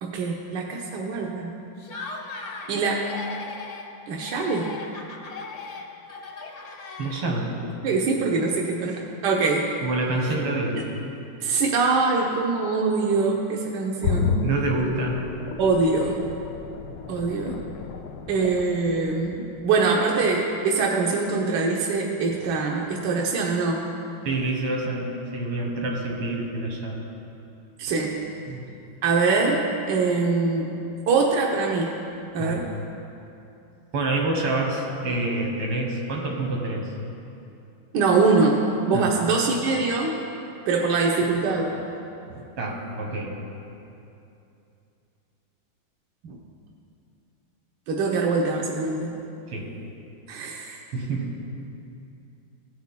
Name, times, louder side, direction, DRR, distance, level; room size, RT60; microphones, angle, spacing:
voice 1, 0.0-1.5 2.7-3.0 4.1-4.7 7.8-9.7 10.2-10.3 10.7-10.8 11.4-14.4 15.6-16.2 17.1-17.6 18.3-23.8 27.8-28.2 29.0-30.8 31.1-31.9 32.3-32.7 37.9-38.6 38.9-40.2 40.7-41.8 46.2-46.4 47.9-49.1 50.3-50.8, right 4 dB, 65° right, -1 dB, 1.2 m, -23 dB
Laughter, 1.8-2.7 3.0-3.9 4.2-7.5, left 4 dB, 55° left, 0.9 m, -38 dB
voice 2, 7.0-7.5 9.8-10.8 14.4-15.2 24.3-27.0 28.5-28.6 32.4-32.6 33.9-36.9 38.9-39.1 42.6-43.3 49.5-49.7 50.9-51.3, right 2 dB, 85° right, -1 dB, 2.3 m, -27 dB
sound 1, 14.0-19.8 20.2-20.3, left 5 dB, 75° left, 1.2 m, -31 dB
16.5 x 9.3 x 2.2 m, 2.7 s
omnidirectional pair, 2.3 m